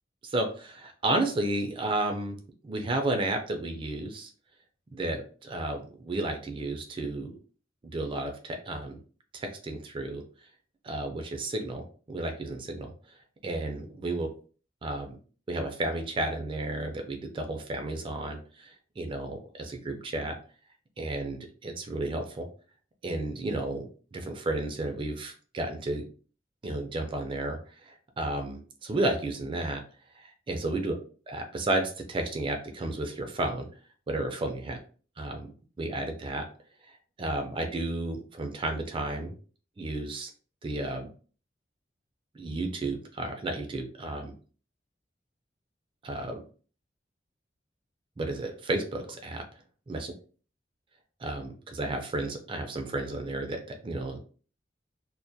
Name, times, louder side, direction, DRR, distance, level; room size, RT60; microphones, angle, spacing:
voice 1, 0.2-2.4 2.6-4.3 4.9-7.3 7.9-9.0 9.3-10.2 10.8-12.9 13.4-14.3 14.8-15.2 15.5-20.3 21.0-22.5 23.0-26.1 26.6-27.6 27.8-29.8 30.2-30.9 31.3-33.7 34.1-34.8 35.2-35.5 35.8-36.4 37.2-39.3 39.8-40.3 40.6-41.1 42.3-44.3 46.0-46.4 48.2-49.4 49.9-50.1 51.2-54.2, right 2 dB, 30° right, 5 dB, 0.3 m, -32 dB
2.2 x 2.1 x 2.6 m, 0.40 s
head